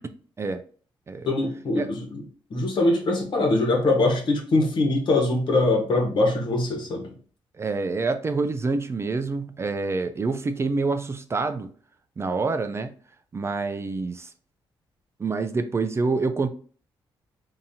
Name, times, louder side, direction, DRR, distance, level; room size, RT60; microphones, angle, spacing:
voice 1, 1.2-2.2 2.5-7.1, left 2 dB, 60° left, 1.2 m, -22 dB
voice 2, 7.6-11.7 12.2-12.9 13.3-14.3 15.2-16.5, right 3 dB, 30° right, 0.4 m, -27 dB
3.8 x 2.7 x 2.8 m
cardioid pair, 90°, 9 cm